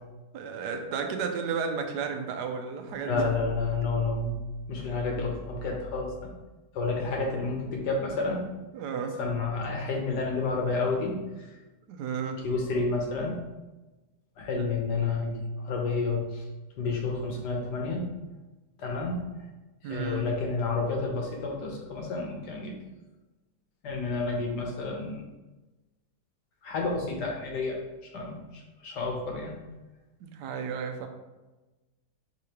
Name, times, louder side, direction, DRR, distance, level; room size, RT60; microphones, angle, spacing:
voice 1, 0.3-3.2 8.7-9.2 11.9-12.5 14.6-14.7 19.8-20.3 30.2-31.1, right 6 dB, 85° right, 5 dB, 1.2 m, -33 dB
voice 2, 3.1-4.4 4.7-6.3 6.7-8.5 9.2-11.5 12.4-13.3 14.4-16.4 16.8-18.0 18.8-19.2 19.8-22.7 23.8-25.2 26.6-27.8 28.1-29.6, left 3 dB, 90° left, 0 dB, 1.5 m, -30 dB
4.9 x 3.7 x 2.9 m, 1.1 s
omnidirectional pair, 1.7 m